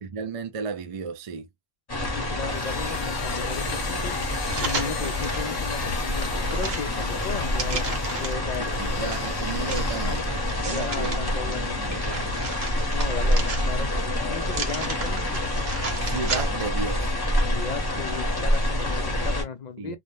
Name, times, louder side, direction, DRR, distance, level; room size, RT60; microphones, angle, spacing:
voice 1, 0.0-1.5 8.6-12.3 16.0-17.1 19.8-20.0, right 5 dB, 50° right, 0.4 m, -34 dB
sound 1, 1.9-19.4, left 1 dB, 25° left, 0.8 m, -27 dB
voice 2, 2.2-4.2 4.6-7.9 8.2-9.2 10.0-10.2 10.7-11.8 12.9-15.4 17.5-20.0, left 6 dB, 55° left, 0.5 m, -35 dB
sound 2, 2.4-10.6, left 8 dB, 80° left, 0.8 m, -39 dB
sound 3, 4.4-5.5 6.0-8.5 9.1-11.2 11.7-14.0 14.5-16.8 17.1-17.2, right 4 dB, 75° right, 1.1 m, -35 dB
2.3 x 2.1 x 2.9 m
omnidirectional pair, 1.0 m